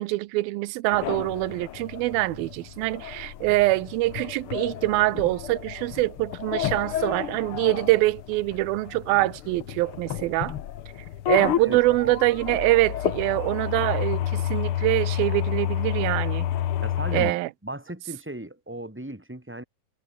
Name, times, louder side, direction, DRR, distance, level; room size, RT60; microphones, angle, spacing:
voice 1, 0.0-10.6 11.3-16.5 17.1-17.5, right 19 dB, 85° right, 2.6 m, -24 dB
sound 1, 0.9-17.3, left 11 dB, 85° left, 1.2 m, -30 dB
voice 2, 11.6-12.1 16.8-17.4 17.6-19.6, right 1 dB, 5° right, 2.3 m, -36 dB
omnidirectional pair, 4.2 m